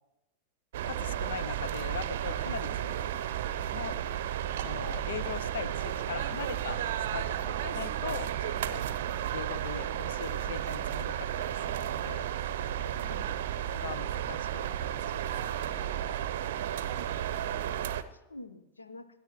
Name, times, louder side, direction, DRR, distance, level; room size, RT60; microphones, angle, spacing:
sound 1, 0.7-18.0, right 10 dB, 55° right, 0.6 m, -33 dB
voice 1, 0.8-3.0 3.7-4.0 4.6-6.8 7.1-8.8 9.3-12.3 13.7-15.9, left 8 dB, 60° left, 19 dB, 0.5 m, -41 dB
voice 2, 2.6-3.0 7.1-7.2 7.9-8.0 13.0-13.4 16.4-16.6 17.4-17.5 18.1-19.1, left 2 dB, 75° left, 12 dB, 0.9 m, -49 dB
27.0 x 12.5 x 3.1 m, 1.0 s
figure-of-eight pair, 90°, 0 cm